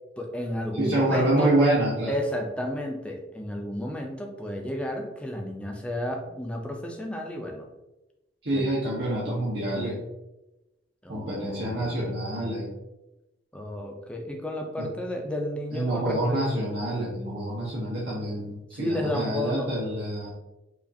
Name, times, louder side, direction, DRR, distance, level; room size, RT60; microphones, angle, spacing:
voice 1, 0.2-1.5 2.1-7.7 8.5-8.6 11.0-12.0 13.5-16.4 18.7-19.7, left 1 dB, 5° left, 1 dB, 0.4 m, -32 dB
voice 2, 0.7-2.1 8.4-10.0 11.1-12.7 14.8-14.9 15.7-20.4, right 1 dB, 65° right, -6 dB, 0.8 m, -27 dB
4.9 x 2.4 x 2.6 m, 0.99 s
head